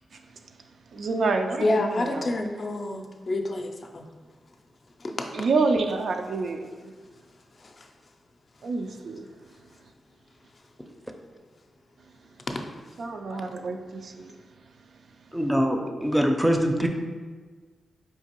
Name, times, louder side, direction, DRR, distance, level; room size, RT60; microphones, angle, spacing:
voice 1, 0.9-2.3 5.3-6.7 8.6-9.3 13.0-14.3, right 3 dB, 70° right, 5 dB, 0.3 m, -27 dB
voice 2, 1.6-4.0 5.0-5.3 13.3-13.4, left 2 dB, 50° left, 3 dB, 0.4 m, -28 dB
voice 3, 15.3-16.9, equal, 5° right, 4 dB, 0.5 m, -23 dB
4.6 x 2.5 x 2.9 m, 1.5 s
cardioid pair, 55°, 0 cm